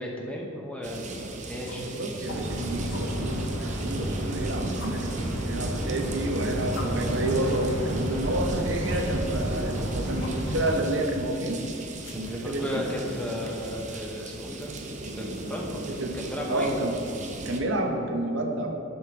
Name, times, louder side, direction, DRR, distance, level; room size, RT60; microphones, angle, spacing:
voice 1, 0.0-2.3 12.1-14.7 15.2-15.8 16.1-16.7, left 1 dB, 5° left, -2 dB, 0.6 m, -35 dB
sound 1, 0.8-17.6, right 2 dB, 40° right, 0.6 m, -39 dB
sound 2, 1.4-13.7, left 2 dB, 60° left, 0.7 m, -48 dB
voice 2, 1.8-3.5 3.8-5.2 5.5-11.6 12.1-12.8 15.9-16.2 16.5-17.0 17.4-18.7, right 1 dB, 65° right, 3 dB, 0.8 m, -29 dB
sound 3, 2.3-10.7, equal, 85° right, 1.3 m, -31 dB
11.0 x 5.5 x 2.9 m, 2.9 s
head